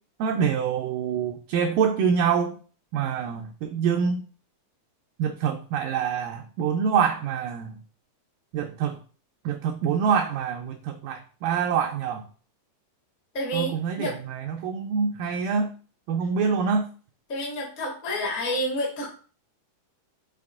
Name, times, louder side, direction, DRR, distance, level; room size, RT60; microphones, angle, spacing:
voice 1, 0.2-2.6 2.9-4.2 5.2-7.8 8.5-9.0 9.5-12.2 13.5-15.7 16.1-16.9, right 6 dB, 85° right, 5 dB, 1.9 m, -25 dB
voice 2, 13.3-14.2 17.3-19.2, equal, 40° left, -1 dB, 1.0 m, -29 dB
5.9 x 4.8 x 3.5 m, 0.40 s
omnidirectional pair, 4.4 m